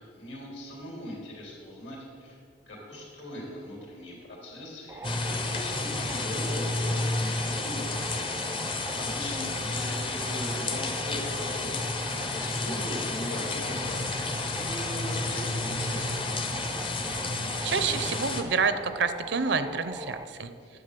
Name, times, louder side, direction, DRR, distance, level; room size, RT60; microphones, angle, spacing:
voice 1, 0.0-2.4 2.7-8.2 8.6-16.4 20.6-20.7, left 1 dB, 65° left, -2 dB, 3.1 m, -40 dB
sound 1, 4.9-20.3, right 2 dB, 15° right, 0.4 m, -41 dB
sound 2, 5.0-18.4, left 2 dB, 25° left, 0.7 m, -31 dB
voice 2, 17.3-20.5, right 5 dB, 60° right, 11 dB, 0.6 m, -28 dB
9.5 x 7.3 x 6.7 m, 2.3 s
head